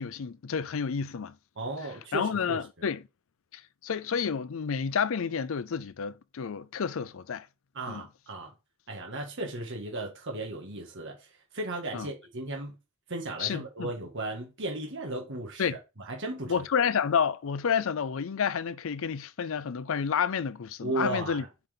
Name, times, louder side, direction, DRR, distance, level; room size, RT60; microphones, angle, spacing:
voice 1, 0.0-1.4 2.1-3.0 3.5-7.5 7.9-8.0 11.9-12.1 13.4-13.9 15.6-15.8 16.5-21.4, left 6 dB, 70° left, 0.5 m, -30 dB
voice 2, 1.6-2.8 7.7-8.5 8.9-11.2 11.5-12.7 13.1-16.6 20.8-21.5, right 2 dB, 60° right, 1.6 m, -35 dB
5.7 x 3.9 x 5.0 m
head